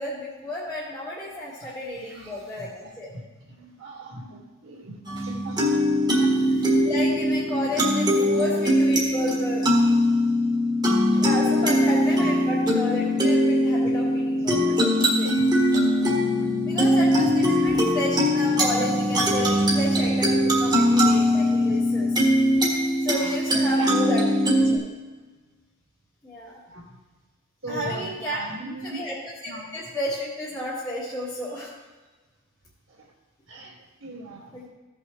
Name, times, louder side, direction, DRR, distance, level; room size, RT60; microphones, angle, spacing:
voice 1, 0.0-3.1 6.8-9.6 11.1-15.3 16.4-22.1 23.0-24.9 26.2-26.6 27.7-28.4 28.8-31.7 34.5-34.7, left 1 dB, 15° left, -8 dB, 1.7 m, -32 dB
voice 2, 1.6-5.6 6.2-6.3 8.1-8.7 9.9-10.0 11.1-11.8 14.4-14.6 15.4-15.5 23.1-23.9 26.7-27.0 27.6-29.0 29.4-29.7 32.9-33.1 33.5-34.6, right 1 dB, 65° right, -1 dB, 2.0 m, -39 dB
sound 1, 5.1-24.8, equal, 20° right, 1.5 m, -21 dB
15.5 x 5.6 x 3.2 m, 1.3 s
head